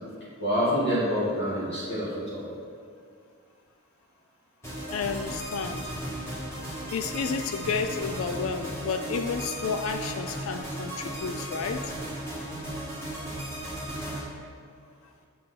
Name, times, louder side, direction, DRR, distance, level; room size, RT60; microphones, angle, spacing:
voice 1, 0.4-2.5, equal, 55° left, -9 dB, 1.8 m, -27 dB
sound 1, 4.6-14.2, right 1 dB, 15° left, 1.9 m, -36 dB
voice 2, 4.9-5.9 6.9-11.9, left 5 dB, 80° left, 7 dB, 0.4 m, -31 dB
7.4 x 4.5 x 5.9 m, 2.3 s
head